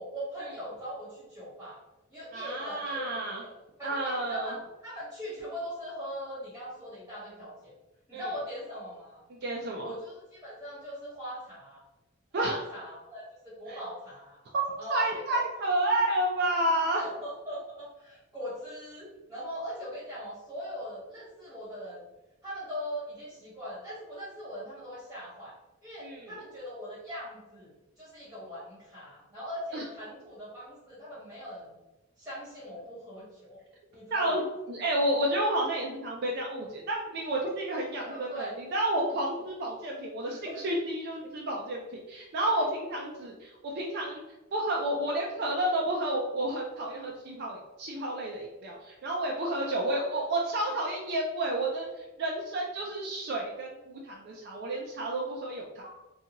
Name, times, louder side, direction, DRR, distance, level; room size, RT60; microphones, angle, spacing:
voice 1, 0.0-1.8 2.1-3.5 3.8-4.6 4.8-7.7 8.1-9.2 9.8-11.8 12.4-14.4 14.8-15.4 16.5-16.6 16.9-22.0 22.4-25.5 25.8-31.7 32.2-33.6 33.9-34.4 38.1-38.5 40.2-40.6 49.9-50.2 55.8-55.9, equal, 10° right, -9 dB, 0.9 m, -40 dB
voice 2, 2.3-3.4 3.8-4.5 8.1-8.3 9.3-9.9 12.3-12.6 13.7-13.8 14.5-14.6 14.9-17.1 26.0-26.3 29.7-29.8 34.1-34.4 34.7-44.2 44.5-55.8, right 1 dB, 50° right, -2 dB, 0.4 m, -30 dB
2.5 x 2.3 x 2.8 m, 0.99 s
head